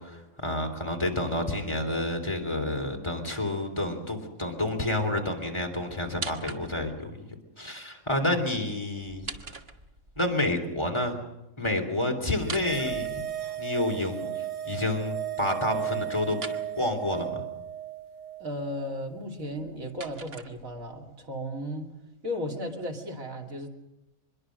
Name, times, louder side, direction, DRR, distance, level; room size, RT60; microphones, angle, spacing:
voice 1, 0.0-7.1 7.6-9.3 10.2-11.2 11.6-13.1 13.6-16.4 16.7-17.4, left 1 dB, 20° left, 2 dB, 3.3 m, -29 dB
sound 1, 6.1-7.0 9.0-10.2 12.4-13.7 16.3-16.7 19.4-21.0, right 3 dB, 45° right, 1.7 m, -41 dB
sound 2, 12.4-19.0, right 10 dB, 30° right, 0.9 m, -35 dB
voice 2, 18.4-21.9 22.2-23.7, equal, 75° right, 2 dB, 2.9 m, -35 dB
24.5 x 22.0 x 6.4 m, 0.93 s
omnidirectional pair, 1.5 m